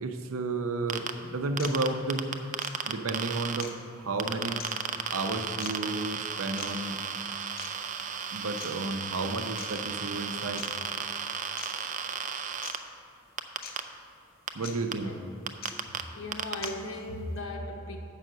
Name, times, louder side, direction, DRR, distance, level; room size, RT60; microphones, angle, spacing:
voice 1, 0.0-2.3 2.9-4.6 5.1-7.0 8.3-10.7 14.5-15.2, right 2 dB, 80° right, 7 dB, 0.6 m, -32 dB
sound 1, 0.9-1.0 1.6-1.8 2.6-2.7 3.6-3.8 4.6-4.7 5.6-5.7 6.6-6.7 7.6-7.8 8.6-8.7 9.6-9.7 10.6-10.7 11.6-11.7 12.6-12.8 13.6-13.7 14.6-14.7 15.6-15.7 16.6-16.7, left 6 dB, 45° left, 0.7 m, -41 dB
sound 2, 0.9-1.1 1.6-3.6 4.2-12.8 13.4-13.8 14.5-14.6 14.9-15.0 15.5-16.0 16.3-16.6, right 7 dB, 35° right, 0.4 m, -34 dB
voice 2, 15.9-18.0, left 1 dB, 65° left, 2 dB, 1.0 m, -37 dB
7.5 x 5.6 x 6.6 m, 2.5 s
head